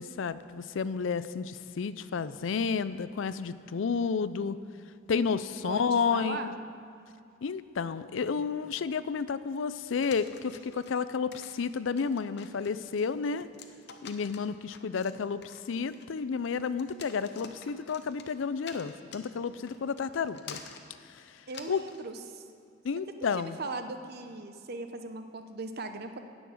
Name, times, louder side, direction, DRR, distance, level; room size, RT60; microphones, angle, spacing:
voice 1, 0.0-4.6 5.1-6.5 7.4-13.5 14.0-20.6 21.1-21.3 21.7-21.8 22.8-23.6, left 5 dB, 80° left, 14 dB, 0.4 m, -31 dB
voice 2, 5.6-6.6 21.5-22.4 23.3-26.2, right 3 dB, 55° right, 7 dB, 0.8 m, -39 dB
sound 1, 10.0-22.1, left 6 dB, 60° left, 0.8 m, -49 dB
10.0 x 7.1 x 8.5 m, 2.6 s
head